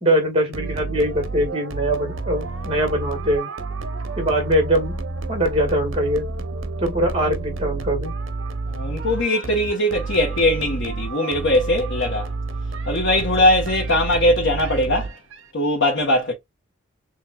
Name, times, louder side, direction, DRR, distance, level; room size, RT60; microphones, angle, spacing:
voice 1, 0.0-3.5 4.2-4.9 5.3-6.2 6.8-8.1, right 1 dB, 30° right, 1.7 m, -22 dB
sound 1, 0.5-15.5, right 3 dB, 70° right, 0.7 m, -30 dB
voice 2, 8.7-12.3 12.9-15.1 15.5-16.3, left 1 dB, 70° left, 1.0 m, -20 dB
6.3 x 2.4 x 2.2 m
head